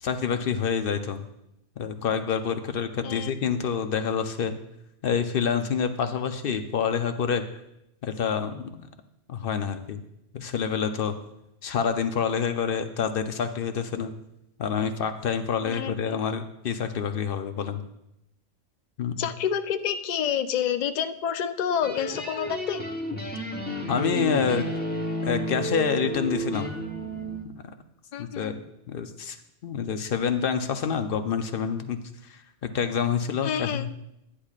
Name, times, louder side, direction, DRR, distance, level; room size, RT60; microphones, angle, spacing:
voice 1, 0.0-1.2 1.8-4.6 5.0-7.4 8.0-8.9 9.3-10.0 10.3-11.1 11.6-14.1 14.6-17.8 19.0-19.3 23.9-24.6 25.2-26.7 27.5-27.6 28.2-28.6 28.9-29.4 29.6-32.0 32.2-32.4 32.7-33.9, left 7 dB, 55° left, 8 dB, 0.7 m, -27 dB
voice 2, 3.0-3.3 15.6-16.2 19.2-22.8 28.1-28.5 33.4-33.9, left 8 dB, 80° left, 9 dB, 0.4 m, -28 dB
sound 1, 21.8-27.4, equal, 10° left, 0.7 m, -31 dB
11.5 x 10.0 x 2.4 m, 0.84 s
omnidirectional pair, 1.3 m